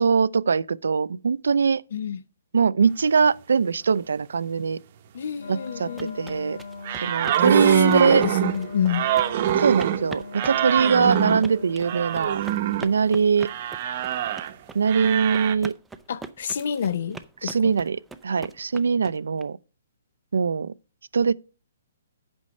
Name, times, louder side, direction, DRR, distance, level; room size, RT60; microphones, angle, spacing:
voice 1, 0.0-1.8 2.5-4.8 5.5-6.6 7.0-8.2 9.6-12.4 12.8-13.5 14.7-15.7 17.4-19.6 20.3-20.7 21.1-21.3, right 5 dB, 90° right, 0.4 m, -22 dB
voice 2, 5.1-6.2 7.8-9.0 16.1-17.7, left 8 dB, 60° left, 0.7 m, -28 dB
Wind instrument woodwind instrument, 5.4-12.0, left 3 dB, 80° left, 1.3 m, -40 dB
sound 1, 5.7-19.4, right 3 dB, 5° right, 0.5 m, -42 dB
sound 2, 6.8-12.9 13.4-14.5 14.9-15.5, right 10 dB, 40° right, 0.8 m, -24 dB
8.6 x 5.3 x 6.3 m
hypercardioid pair, 165°, 0 cm